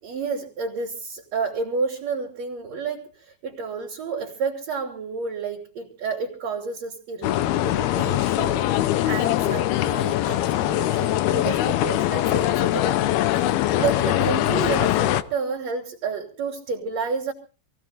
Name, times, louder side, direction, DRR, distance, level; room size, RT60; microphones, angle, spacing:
voice 1, 0.0-7.4 7.6-17.3, right 5 dB, 45° right, -2 dB, 3.6 m, -30 dB
sound 1, 7.2-15.2, left 14 dB, 75° left, 2.5 m, -22 dB
27.0 x 18.0 x 2.6 m, 0.36 s
omnidirectional pair, 4.9 m